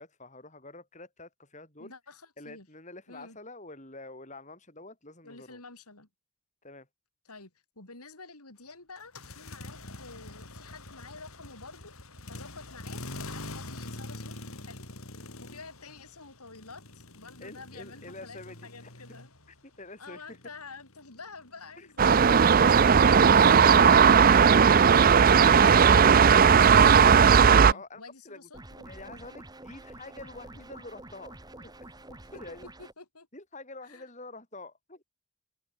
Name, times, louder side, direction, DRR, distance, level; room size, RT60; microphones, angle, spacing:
voice 1, 0.0-1.9 2.4-5.6 6.6-6.9 17.4-18.9 19.6-20.4 21.8-21.9 27.7-28.5 28.8-31.7 32.3-32.7 33.3-35.0, left 2 dB, 30° left, 7.5 m, -47 dB
voice 2, 1.8-2.7 3.1-3.4 5.2-6.1 7.3-11.9 12.3-14.3 14.6-14.8 15.4-19.3 20.0-24.2 24.8-26.5 27.6-29.3 32.3-32.4 32.8-33.3 33.8-34.1, left 4 dB, 90° left, 6.0 m, -49 dB
sound 1, 9.0-19.8 20.1-24.2, left 2 dB, 70° left, 6.0 m, -45 dB
sound 2, 22.0-27.7, right 6 dB, 40° right, 0.4 m, -17 dB
sound 3, 28.5-32.9, right 1 dB, 15° right, 2.5 m, -47 dB
open air
head